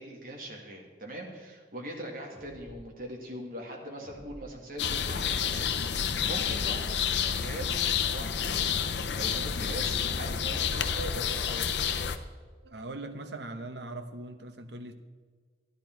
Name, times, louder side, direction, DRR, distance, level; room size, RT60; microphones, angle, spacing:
voice 1, 0.0-6.9 7.3-11.7, right 1 dB, 50° right, 0 dB, 2.0 m, -41 dB
sound 1, 2.3-2.9 4.0-4.7 5.6-6.2 7.3-8.0 9.0-9.7 11.0-11.7, equal, 30° right, 2.0 m, -51 dB
sound 2, 4.8-12.2, left 7 dB, 80° left, 0.6 m, -29 dB
voice 2, 12.6-14.9, right 2 dB, 80° right, 8 dB, 0.9 m, -40 dB
12.5 x 10.5 x 4.5 m, 1.5 s
head